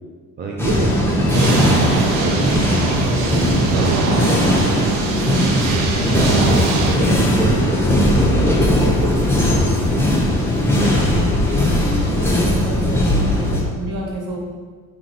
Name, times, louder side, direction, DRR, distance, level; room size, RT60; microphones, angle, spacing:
voice 1, 0.4-1.6 2.0-9.4, right 3 dB, 25° right, -1 dB, 0.4 m, -28 dB
sound 1, 0.6-13.6, left 1 dB, 5° left, 0.9 m, -18 dB
sound 2, 1.3-7.0, right 3 dB, 80° right, 0.6 m, -21 dB
voice 2, 12.1-14.4, right 1 dB, 50° right, -3 dB, 1.3 m, -30 dB
3.7 x 3.2 x 2.9 m, 1.5 s
hypercardioid pair, 55°, 43 cm